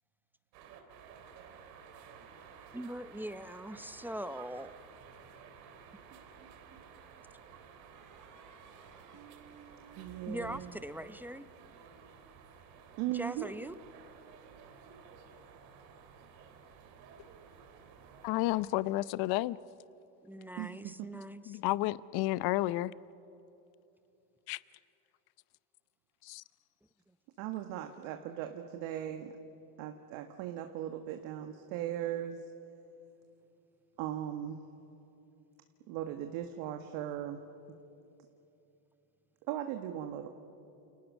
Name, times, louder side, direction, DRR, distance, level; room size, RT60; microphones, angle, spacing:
sound 1, 0.5-18.6, right 6 dB, 90° right, 3.4 m, -54 dB
voice 1, 2.7-4.7 10.3-11.5 13.1-13.8 20.2-21.6, equal, 5° right, 0.6 m, -41 dB
sound 2, 6.1-7.0 7.9-11.4, right 7 dB, 40° right, 4.6 m, -58 dB
voice 2, 10.0-10.8 13.0-13.5 20.6-21.2 27.4-29.3 29.8-32.4 34.0-34.7 35.9-37.4 39.5-40.3, right 11 dB, 70° right, 1.9 m, -38 dB
voice 3, 18.2-19.6 21.5-22.9 24.5-24.6 26.2-26.4, left 17 dB, 50° left, 0.7 m, -31 dB
29.5 x 29.0 x 6.4 m
supercardioid pair, 110°, 48 cm